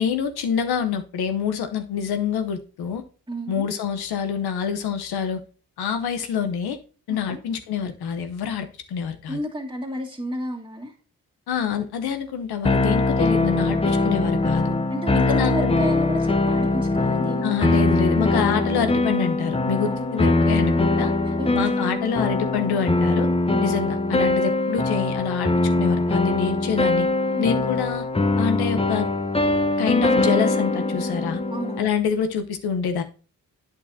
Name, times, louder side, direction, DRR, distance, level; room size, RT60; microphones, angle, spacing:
voice 1, 0.0-3.0 3.5-5.4 5.8-6.8 7.1-9.4 11.5-14.7 15.1-15.9 17.4-21.1 21.5-23.3 23.6-25.5 25.8-27.1 27.4-28.1 28.4-29.1 29.8-31.4 31.8-33.0, left 7 dB, 75° left, 8 dB, 0.9 m, -26 dB
voice 2, 3.3-3.7 7.1-7.4 9.3-10.9 14.9-17.6 19.9-20.1 21.2-21.7 23.5-23.8 27.3-27.7 31.5-32.0, equal, 10° right, -5 dB, 1.7 m, -32 dB
sound 1, 12.7-31.9, left 2 dB, 15° left, 0.8 m, -22 dB
8.6 x 6.7 x 2.7 m, 0.36 s
supercardioid pair, 40°, 38 cm